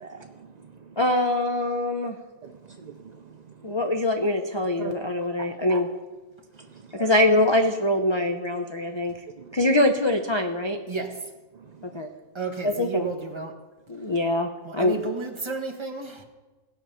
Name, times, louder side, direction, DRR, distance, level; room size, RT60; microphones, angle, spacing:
voice 1, 0.0-0.9 2.4-3.2 4.8-4.9 5.4-5.8 6.6-7.1 9.4-9.6, right 5 dB, 75° right, 5 dB, 0.4 m, -42 dB
voice 2, 1.0-2.2 3.6-5.9 7.0-9.1 9.5-10.8 12.0-12.1 12.6-13.1 13.9-15.0, left 1 dB, 40° left, 3 dB, 0.4 m, -23 dB
voice 3, 10.9-11.2 12.4-13.5 14.6-16.2, right 3 dB, 20° right, 1 dB, 1.2 m, -32 dB
16.5 x 6.8 x 5.6 m, 1.2 s
omnidirectional pair, 1.5 m